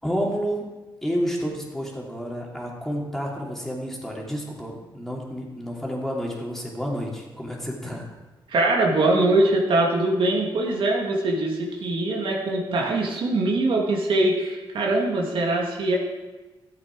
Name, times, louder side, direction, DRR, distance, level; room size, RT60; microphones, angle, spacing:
voice 1, 0.0-0.7 1.0-8.1, equal, 5° left, -3 dB, 3.0 m, -30 dB
voice 2, 8.5-16.0, right 2 dB, 70° right, -1 dB, 2.0 m, -22 dB
13.0 x 8.6 x 4.7 m, 1.2 s
cardioid pair, 80°, 9 cm